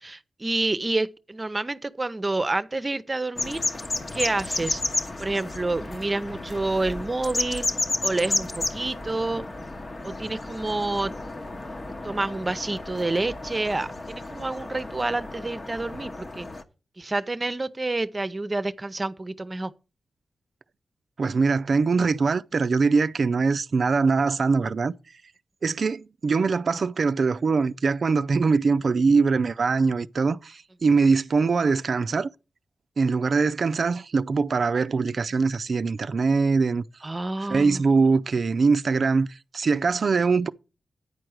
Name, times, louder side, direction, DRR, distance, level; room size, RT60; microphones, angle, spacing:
voice 1, 0.0-3.6 4.1-4.8 5.2-7.7 8.0-9.4 10.0-11.1 12.0-16.5 17.0-19.7 37.0-37.8, right 2 dB, 30° right, 0.7 m, -28 dB
sound 1, 3.4-16.6, left 2 dB, 45° left, 1.0 m, -32 dB
voice 2, 21.2-24.9 25.6-32.3 33.0-36.8 37.4-40.5, right 4 dB, 65° right, 0.4 m, -22 dB
9.6 x 4.6 x 6.3 m
cardioid pair, 55°, 0 cm